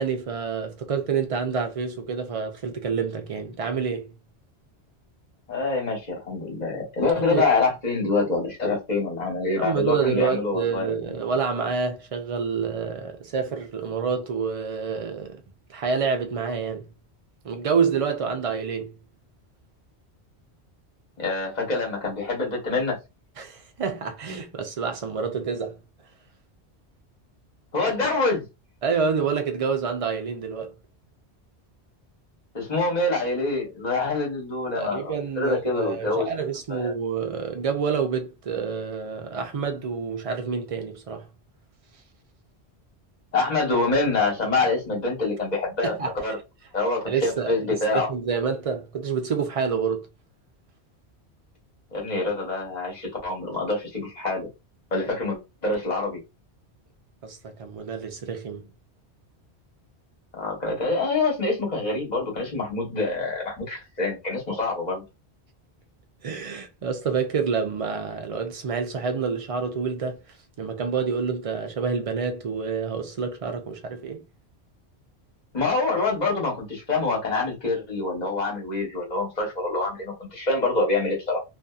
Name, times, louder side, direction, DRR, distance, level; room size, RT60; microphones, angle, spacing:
voice 1, 0.0-4.1 7.3-7.4 9.6-15.4 15.7-16.9 17.4-18.9 23.4-25.8 28.8-30.7 34.7-41.3 45.8-46.1 47.1-50.1 57.2-58.7 66.2-74.2, right 6 dB, 65° right, 0.3 m, -28 dB
voice 2, 5.5-11.0 21.2-23.0 27.7-28.4 32.5-36.3 36.7-36.9 43.3-45.9 46.2-46.4 46.7-48.1 51.9-54.5 54.9-56.2 60.4-65.0 75.5-81.4, left 3 dB, 40° left, 1.2 m, -26 dB
2.7 x 2.4 x 2.3 m
omnidirectional pair, 1.1 m